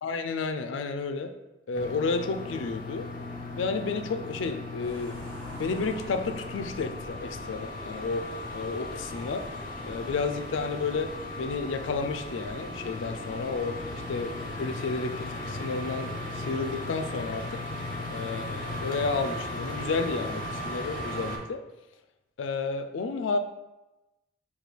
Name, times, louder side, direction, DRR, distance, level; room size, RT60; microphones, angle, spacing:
voice 1, 0.0-1.3 1.7-3.1 3.5-5.3 5.5-8.3 8.5-9.5 9.8-13.8 14.1-17.6 18.1-21.6 22.4-23.4, left 4 dB, 90° left, 8 dB, 0.4 m, -31 dB
sound 1, 1.7-21.4, left 2 dB, 45° left, 0.6 m, -37 dB
sound 2, 4.8-14.8, equal, 10° left, 1.2 m, -47 dB
5.2 x 2.3 x 3.2 m, 1.0 s
head